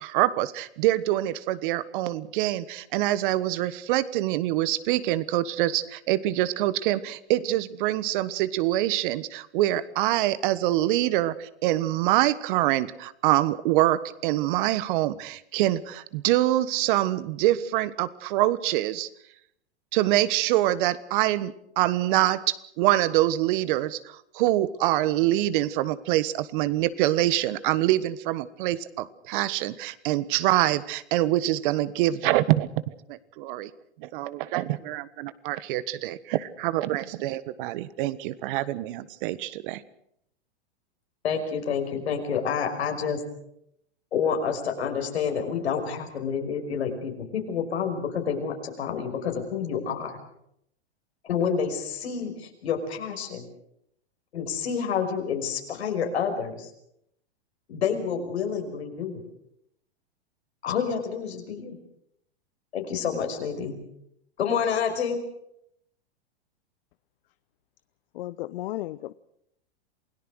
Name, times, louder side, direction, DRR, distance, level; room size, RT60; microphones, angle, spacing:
voice 1, 0.0-19.1 19.9-33.7 34.0-39.8, right 15 dB, 50° right, 16 dB, 1.4 m, -25 dB
voice 2, 41.2-43.2 44.1-50.2 51.2-53.5 54.3-56.7 57.7-59.2 60.6-61.8 62.7-63.8 64.4-65.2, left 7 dB, 80° left, 4 dB, 5.5 m, -28 dB
voice 3, 68.1-69.1, left 16 dB, 60° left, 16 dB, 0.8 m, -34 dB
28.0 x 17.5 x 6.4 m, 0.74 s
hypercardioid pair, 115°, 32 cm